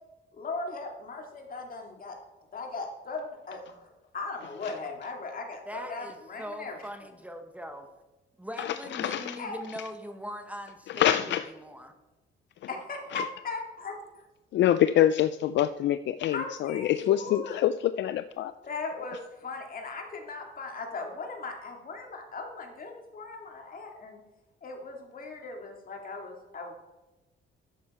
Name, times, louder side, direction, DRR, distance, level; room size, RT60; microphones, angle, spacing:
voice 1, 0.3-2.2 2.5-6.8 9.4-9.6 12.7-14.2 16.3-17.6 18.6-24.2 24.6-26.7, left 3 dB, 45° left, 2 dB, 2.3 m, -38 dB
voice 2, 5.7-7.9 8.4-11.9, equal, 5° right, 6 dB, 1.0 m, -41 dB
voice 3, 8.6-9.4 10.9-11.5 13.1-13.2 14.5-18.5, left 11 dB, 65° left, 12 dB, 0.4 m, -26 dB
11.5 x 7.4 x 4.3 m, 1.1 s
cardioid pair, 90°, 20 cm